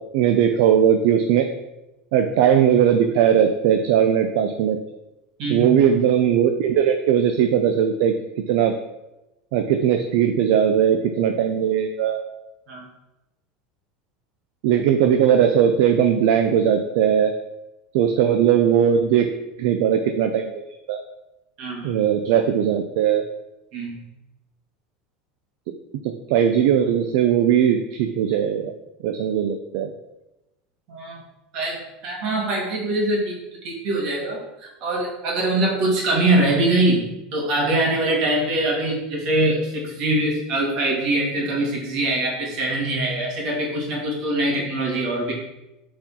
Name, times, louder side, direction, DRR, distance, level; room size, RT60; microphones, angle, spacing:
voice 1, 0.1-1.5 2.1-4.8 5.5-8.1 8.5-8.8 9.5-12.2 14.6-17.3 17.9-19.3 19.6-20.6 20.9-21.0 21.8-23.2 26.0-28.7 29.0-29.9, right 9 dB, 65° right, 6 dB, 0.5 m, -19 dB
voice 2, 5.4-5.8 12.7-12.9 21.6-22.0 23.7-23.9 30.9-31.2 31.5-33.4 33.6-45.3, right 1 dB, 50° right, -2 dB, 1.9 m, -23 dB
6.0 x 4.2 x 4.2 m, 0.96 s
supercardioid pair, 155°, 0 cm